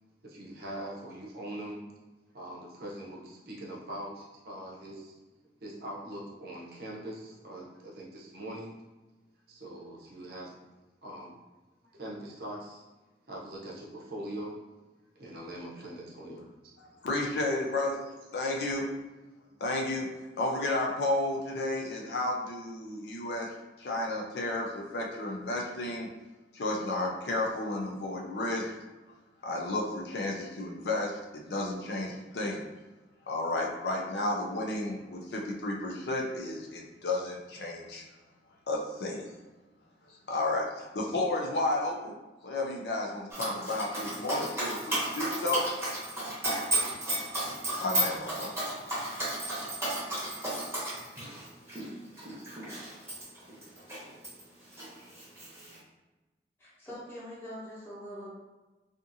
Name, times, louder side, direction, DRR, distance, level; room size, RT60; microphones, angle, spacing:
voice 1, 0.2-1.8 2.3-5.1 5.6-8.8 9.5-10.6 11.0-11.4 12.0-12.8 13.3-14.6 15.2-16.5 18.4-18.5, right 1 dB, 60° right, -3 dB, 0.6 m, -42 dB
voice 2, 16.8-18.0 18.3-18.9 19.6-20.1 20.4-26.1 26.5-28.7 29.4-32.6 33.3-38.0 38.7-39.3 40.3-42.1 42.4-45.7 47.8-48.6, left 2 dB, 70° left, -1 dB, 0.5 m, -32 dB
Dog, 43.3-54.4 54.7-55.8, right 1 dB, 15° right, 0.8 m, -33 dB
voice 3, 56.6-58.3, equal, 15° left, -9 dB, 0.9 m, -43 dB
2.5 x 2.5 x 2.6 m, 1.2 s
head